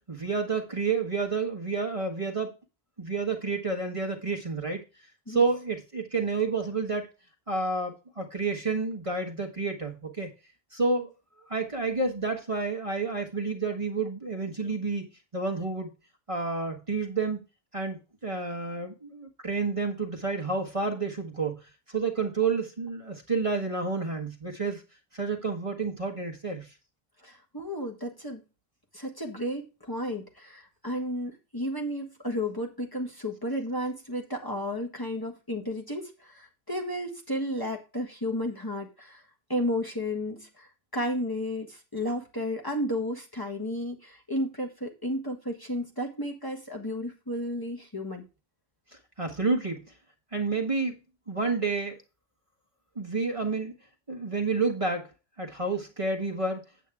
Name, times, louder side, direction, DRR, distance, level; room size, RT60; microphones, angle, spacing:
voice 1, 0.1-2.5 3.0-4.8 5.3-7.1 7.5-10.3 10.7-11.1 11.5-15.1 15.3-15.9 16.3-17.4 17.7-21.6 21.9-24.8 25.1-26.7 49.2-49.8 50.3-51.0 51.3-52.0 52.9-53.7 54.1-55.0 55.4-56.6, right 4 dB, 30° right, 2 dB, 1.4 m, -29 dB
voice 2, 27.2-28.4 28.9-39.2 39.5-48.2, equal, 20° left, 0 dB, 1.5 m, -33 dB
8.5 x 8.3 x 3.6 m, 0.30 s
omnidirectional pair, 1.1 m